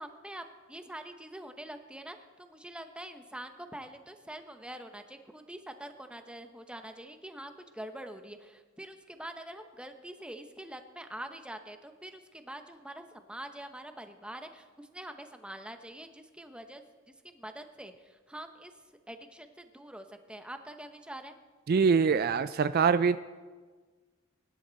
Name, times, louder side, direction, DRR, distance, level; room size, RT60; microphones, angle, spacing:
voice 1, 0.0-16.8 17.2-18.7 19.1-21.3, right 1 dB, 5° right, 7 dB, 0.9 m, -45 dB
voice 2, 21.7-23.2, right 5 dB, 50° right, 13 dB, 0.4 m, -24 dB
24.0 x 11.5 x 4.1 m, 1.4 s
head